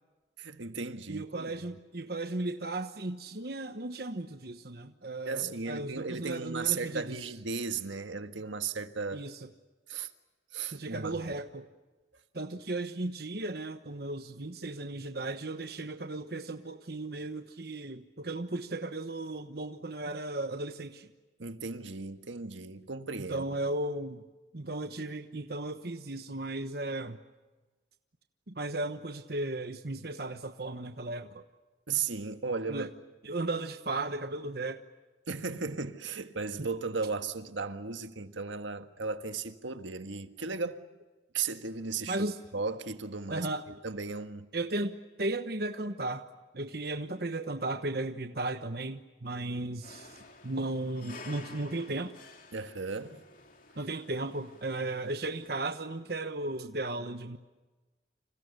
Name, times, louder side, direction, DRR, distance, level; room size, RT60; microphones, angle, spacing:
voice 1, 0.4-1.5 5.3-9.2 9.9-10.1 10.5-11.4 21.4-23.5 31.9-32.9 35.3-40.8 41.3-42.2 42.5-43.5 43.8-44.5 52.5-53.2, right 5 dB, 85° right, 1.7 m, -35 dB
voice 2, 1.1-7.3 9.1-9.5 10.7-11.7 12.3-21.1 23.3-24.2 24.5-27.2 28.5-31.4 32.7-32.9 33.2-34.8 36.6-36.7 42.1-42.4 43.3-43.6 44.5-46.2 46.5-52.1 53.8-57.4, right 2 dB, 55° right, 1.2 m, -35 dB
sound 1, 49.8-55.5, left 3 dB, 45° left, 3.2 m, -52 dB
29.5 x 27.0 x 6.8 m
head